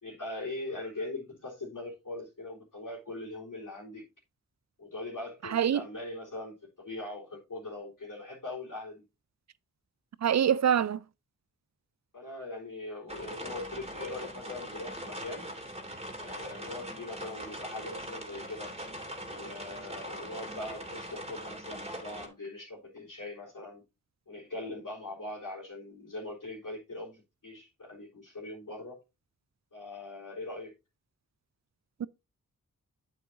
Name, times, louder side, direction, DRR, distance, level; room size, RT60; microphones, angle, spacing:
voice 1, 0.0-4.0 4.8-9.0 12.1-15.6 16.2-18.7 19.3-23.8 24.3-29.0 29.7-30.7, left 2 dB, 70° left, 3.6 m, -41 dB
voice 2, 5.4-5.8 10.2-11.0 32.0-32.1, right 9 dB, 55° right, 0.5 m, -25 dB
sound 1, 13.1-22.3, equal, 20° right, 2.5 m, -41 dB
8.8 x 8.1 x 2.8 m
cardioid pair, 60°, 34 cm